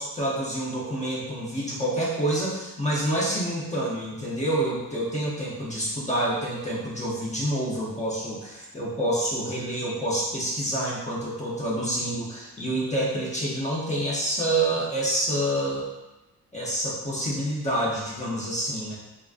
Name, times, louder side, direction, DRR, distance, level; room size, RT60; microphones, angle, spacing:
voice 1, 0.0-15.9 16.5-19.0, right 1 dB, 20° left, -6 dB, 0.4 m, -27 dB
3.3 x 2.4 x 2.3 m, 1.0 s
wide cardioid pair, 175°, 40 cm